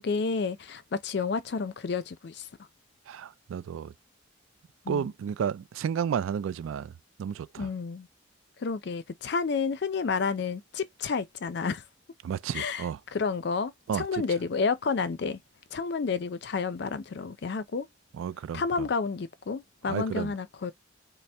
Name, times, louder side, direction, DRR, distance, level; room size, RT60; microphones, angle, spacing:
voice 1, 0.0-2.5 4.8-5.1 7.6-8.1 8.6-11.8 12.5-12.9 13.1-15.4 15.7-17.9 18.5-20.7, left 5 dB, 55° left, 0.4 m, -30 dB
voice 2, 3.1-3.9 4.9-6.9 7.2-7.7 12.2-13.0 13.9-14.2 18.1-18.9 19.9-20.3, right 7 dB, 80° right, 0.3 m, -32 dB
4.2 x 2.0 x 3.3 m
head